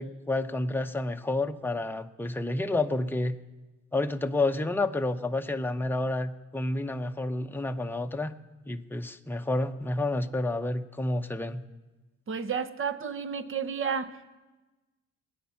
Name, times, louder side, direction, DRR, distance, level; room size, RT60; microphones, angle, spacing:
voice 1, 0.0-3.4 3.9-8.3 8.7-11.6, left 2 dB, 5° left, 6 dB, 0.8 m, -30 dB
voice 2, 12.3-14.1, right 6 dB, 45° right, 11 dB, 1.0 m, -31 dB
20.0 x 9.4 x 5.7 m, 1.2 s
cardioid pair, 90°, 30 cm